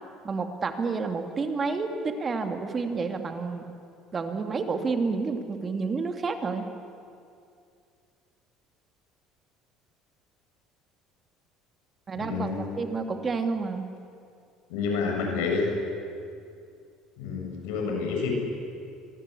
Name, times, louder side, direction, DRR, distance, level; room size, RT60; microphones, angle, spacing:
voice 1, 0.2-3.6 4.1-6.7 12.1-13.9, right 4 dB, 30° right, 6 dB, 2.6 m, -30 dB
voice 2, 12.1-12.7 14.7-15.7 17.2-18.3, left 4 dB, 90° left, 1 dB, 7.6 m, -29 dB
26.0 x 23.0 x 8.5 m, 2.4 s
supercardioid pair, 105°, 0 cm